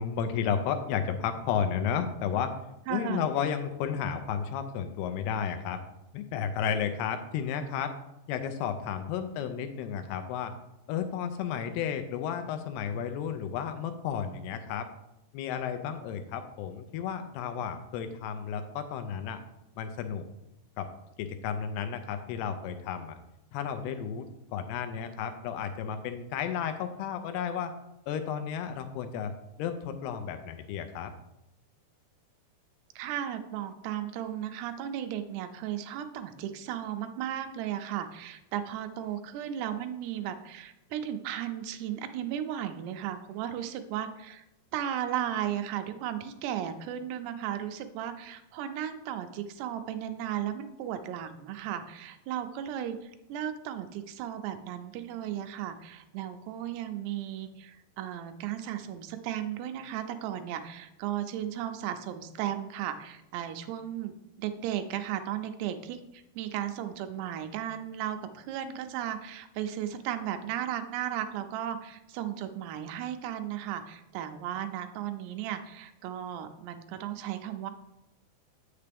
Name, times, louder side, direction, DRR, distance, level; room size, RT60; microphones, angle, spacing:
voice 1, 0.0-2.5 2.9-5.8 6.1-7.9 8.3-10.5 10.9-14.9 15.3-19.4 19.8-20.2 20.8-20.9 21.2-23.2 23.5-24.2 24.5-27.7 28.1-29.3 29.6-31.1, left 8 dB, 80° left, 8 dB, 2.5 m, -32 dB
voice 2, 2.9-3.3 33.0-44.5 44.7-77.7, right 10 dB, 85° right, 8 dB, 2.6 m, -35 dB
8.3 x 6.7 x 3.4 m, 0.90 s
omnidirectional pair, 4.9 m